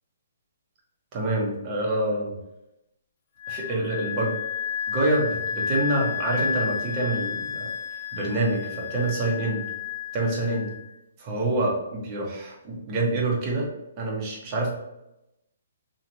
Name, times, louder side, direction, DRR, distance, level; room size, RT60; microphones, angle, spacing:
voice 1, 1.1-2.3 3.5-4.3 4.9-7.7 8.1-9.6 10.1-10.7 11.2-13.7 14.0-14.7, right 2 dB, 30° right, -3 dB, 1.2 m, -26 dB
Wind instrument woodwind instrument, 3.4-10.9, left 7 dB, 45° left, 0.5 m, -31 dB
3.1 x 2.8 x 4.1 m, 0.90 s
hypercardioid pair, 145°, 0 cm